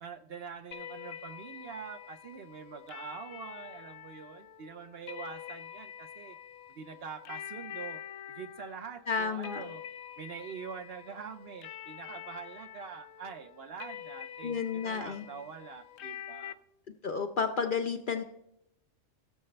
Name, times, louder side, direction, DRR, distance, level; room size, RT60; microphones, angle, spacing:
voice 1, 0.0-6.4 6.7-8.0 8.3-9.8 10.2-16.6, right 6 dB, 60° right, 8 dB, 0.7 m, -44 dB
sound 1, 0.7-16.5, left 10 dB, 85° left, 1.0 m, -46 dB
voice 2, 9.1-9.6 14.4-15.2 17.0-18.2, left 5 dB, 55° left, 7 dB, 0.6 m, -31 dB
16.5 x 6.7 x 3.3 m, 0.79 s
omnidirectional pair, 1.3 m